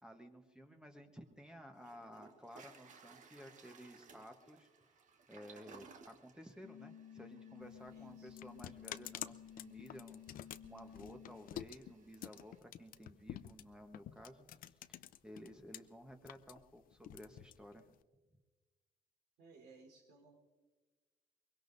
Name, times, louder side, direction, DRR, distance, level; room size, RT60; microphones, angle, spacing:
voice 1, 0.0-4.7 5.3-14.4 14.9-17.9, equal, 5° right, 4 dB, 1.2 m, -55 dB
Toilet flush, 1.3-1.4 1.8-12.6, right 5 dB, 50° right, 1.3 m, -62 dB
sound 1, 6.6-11.6, left 9 dB, 75° left, 0.9 m, -55 dB
sound 2, 7.6-15.8 16.1-18.0, left 11 dB, 55° left, 0.5 m, -49 dB
voice 2, 7.9-8.4 19.4-20.4, right 4 dB, 80° right, 2 dB, 4.1 m, -61 dB
23.0 x 22.5 x 2.7 m, 1.3 s
cardioid pair, 110°, 17 cm